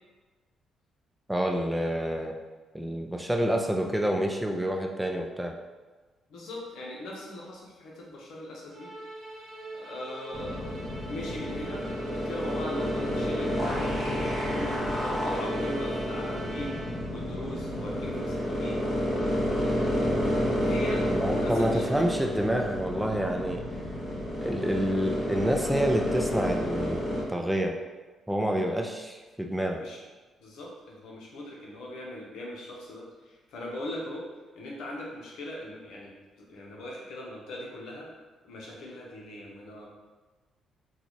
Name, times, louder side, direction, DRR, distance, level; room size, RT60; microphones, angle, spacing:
voice 1, 1.3-2.3 2.7-5.5 21.1-23.6 24.4-27.7 28.3-29.8, equal, 5° right, 2 dB, 0.3 m, -28 dB
voice 2, 6.3-8.9 9.7-10.7 11.0-16.8 17.1-18.8 19.6-20.2 20.6-21.0 21.3-22.1 29.8-30.0 30.4-34.3 34.6-36.1 36.5-38.1 38.4-39.9, left 1 dB, 80° left, -2 dB, 0.8 m, -40 dB
Musical instrument, 8.7-17.2, right 2 dB, 40° right, 0.8 m, -42 dB
sound 1, 10.3-27.2, equal, 35° left, 1.0 m, -30 dB
3.8 x 2.3 x 3.0 m, 1.3 s
cardioid pair, 90°, 0 cm